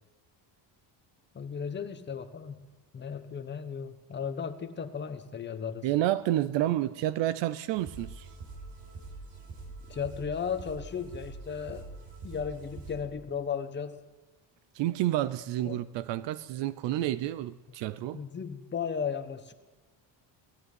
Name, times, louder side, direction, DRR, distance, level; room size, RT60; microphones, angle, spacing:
voice 1, 1.3-2.6 2.9-5.9 9.9-11.9 12.2-14.0 15.6-15.8 18.1-19.5, left 7 dB, 25° left, 8 dB, 1.3 m, -35 dB
voice 2, 5.8-8.3 14.7-18.2, right 13 dB, 70° right, 16 dB, 0.8 m, -29 dB
sound 1, 7.7-13.0, right 3 dB, 50° right, 5.7 m, -44 dB
19.5 x 13.5 x 9.5 m, 1.2 s
cardioid pair, 175°, 44 cm